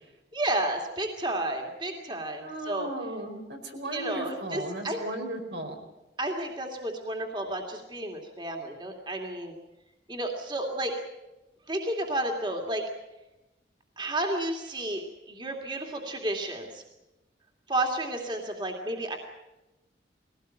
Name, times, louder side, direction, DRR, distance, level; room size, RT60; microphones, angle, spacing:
voice 1, 0.3-2.9 3.9-5.0 6.2-9.5 10.1-10.9 11.7-12.9 14.0-16.8 17.7-19.2, right 1 dB, 25° right, 2 dB, 2.5 m, -31 dB
voice 2, 2.4-5.8, right 1 dB, 80° right, 3 dB, 4.9 m, -36 dB
21.5 x 17.5 x 9.0 m, 1.0 s
head